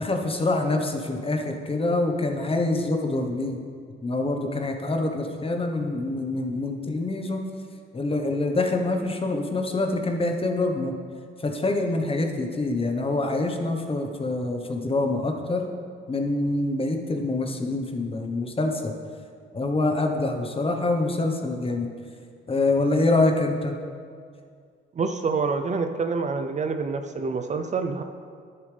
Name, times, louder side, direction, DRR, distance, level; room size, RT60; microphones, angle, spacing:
voice 1, 0.0-3.6 4.0-7.4 7.9-10.9 11.4-15.6 16.1-18.9 19.5-21.9 22.5-23.7, left 2 dB, 30° left, 3 dB, 1.1 m, -25 dB
voice 2, 25.0-28.0, right 4 dB, 35° right, 7 dB, 0.6 m, -27 dB
11.0 x 8.6 x 3.4 m, 2.2 s
cardioid pair, 90°, 20 cm